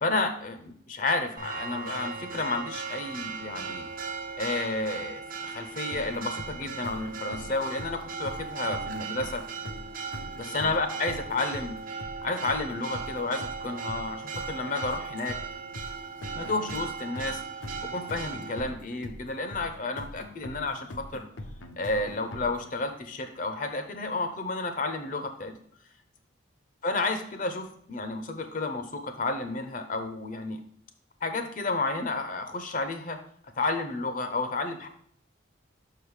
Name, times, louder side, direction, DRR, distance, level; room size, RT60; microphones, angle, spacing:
voice 1, 0.0-3.9 4.4-9.4 10.4-11.8 12.2-15.4 16.3-17.4 17.8-21.2 21.8-25.5 26.8-30.6 31.2-33.2 33.6-34.9, left 3 dB, 45° left, 7 dB, 0.6 m, -31 dB
Church bell, 1.4-18.6, right 5 dB, 45° right, 0.7 m, -38 dB
sound 1, 5.9-22.7, left 1 dB, 80° left, 0.7 m, -43 dB
5.8 x 4.9 x 4.8 m, 0.63 s
head